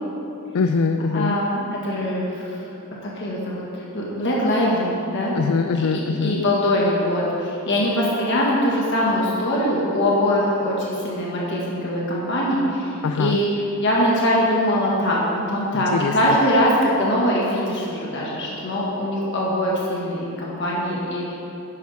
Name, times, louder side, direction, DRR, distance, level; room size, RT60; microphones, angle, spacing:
voice 1, 0.5-1.4 5.3-6.4 13.0-13.4 15.7-16.4, left 4 dB, 80° left, 8 dB, 0.4 m, -22 dB
voice 2, 1.1-2.6 3.0-3.6 3.9-5.3 5.7-13.5 13.8-15.2 15.5-21.3, equal, 55° left, -5 dB, 1.7 m, -22 dB
11.0 x 10.5 x 3.6 m, 2.9 s
head